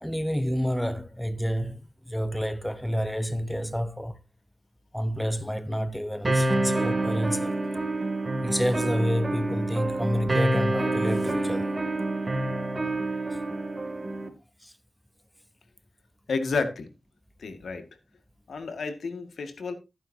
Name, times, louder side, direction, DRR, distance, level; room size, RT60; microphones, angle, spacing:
voice 1, 0.0-1.8 2.1-4.2 4.9-7.5 8.4-11.7 14.6-14.7, equal, 5° left, 0.9 m, -29 dB
sound 1, 6.2-14.3, right 2 dB, 30° right, 2.6 m, -27 dB
voice 2, 16.3-16.9 17.4-17.9 18.5-19.7, left 4 dB, 80° left, 1.9 m, -31 dB
14.5 x 9.1 x 2.8 m
cardioid pair, 65°, 0 cm